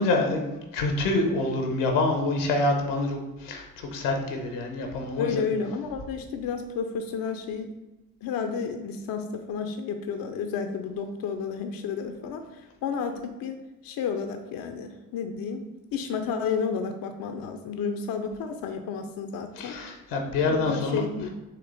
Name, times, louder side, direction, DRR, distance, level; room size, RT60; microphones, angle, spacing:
voice 1, 0.0-5.5 19.6-21.0, left 2 dB, 80° left, 3 dB, 0.9 m, -26 dB
voice 2, 5.2-7.7 8.2-13.6 13.8-15.6 15.9-19.8 20.5-21.3, left 6 dB, 55° left, 6 dB, 0.5 m, -31 dB
4.4 x 3.0 x 3.9 m, 1.1 s
hypercardioid pair, 45°, 41 cm